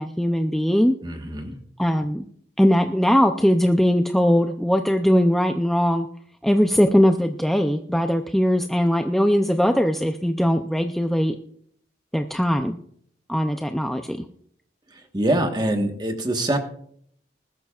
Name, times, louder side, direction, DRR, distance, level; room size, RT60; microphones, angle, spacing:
voice 1, 0.0-1.0 1.8-2.2 2.6-6.1 6.4-11.4 12.1-12.8 13.3-14.2, equal, ahead, 5 dB, 0.5 m, -20 dB
voice 2, 1.0-1.5 14.9-16.6, right 1 dB, 25° right, 5 dB, 1.3 m, -24 dB
20.5 x 13.0 x 2.4 m, 0.64 s
head